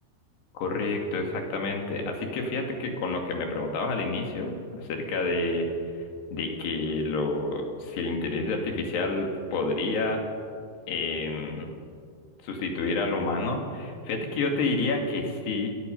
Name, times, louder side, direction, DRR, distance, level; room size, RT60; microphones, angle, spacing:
voice 1, 0.6-5.7 6.3-10.2 10.9-11.7 12.4-15.7, left 3 dB, 85° left, 2 dB, 4.7 m, -29 dB
30.0 x 17.0 x 5.5 m, 2.2 s
omnidirectional pair, 4.6 m